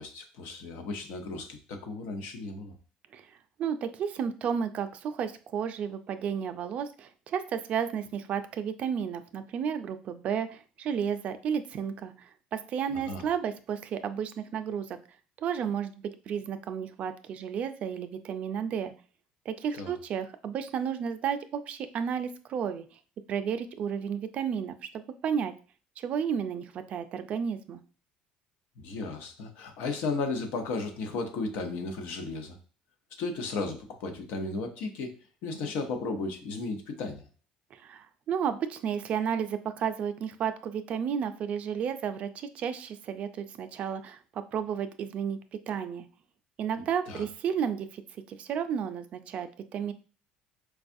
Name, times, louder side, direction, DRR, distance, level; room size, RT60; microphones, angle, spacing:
voice 1, 0.0-2.7 12.9-13.3 19.7-19.9 28.8-32.6 33.2-35.1 35.4-37.3 47.1-47.3, left 3 dB, 75° left, 5 dB, 0.8 m, -34 dB
voice 2, 3.1-15.0 15.4-18.9 19.5-22.9 23.3-25.5 26.0-27.8 37.7-45.4 45.7-46.1 46.6-48.0 48.3-49.9, right 7 dB, 50° right, 9 dB, 0.4 m, -32 dB
4.6 x 2.3 x 2.6 m, 0.38 s
cardioid pair, 125°, 3 cm